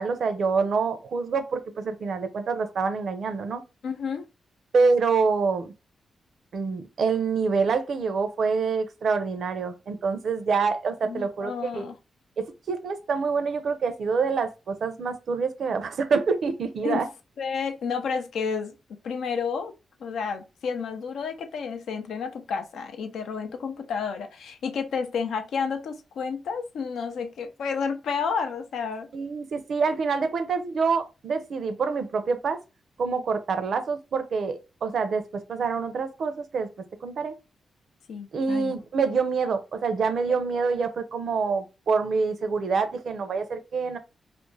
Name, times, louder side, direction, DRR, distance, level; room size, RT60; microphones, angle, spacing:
voice 1, 0.0-3.6 4.7-5.7 6.5-11.8 12.4-17.1 29.1-32.6 33.0-36.7 37.0-37.3 38.3-44.0, right 5 dB, 70° right, 0.5 m, -26 dB
voice 2, 3.8-4.2 11.0-12.0 16.8-17.1 17.4-18.7 19.0-19.7 20.0-29.1 38.1-38.8, left 6 dB, 85° left, 0.4 m, -31 dB
2.4 x 2.1 x 3.1 m
cardioid pair, 60°, 0 cm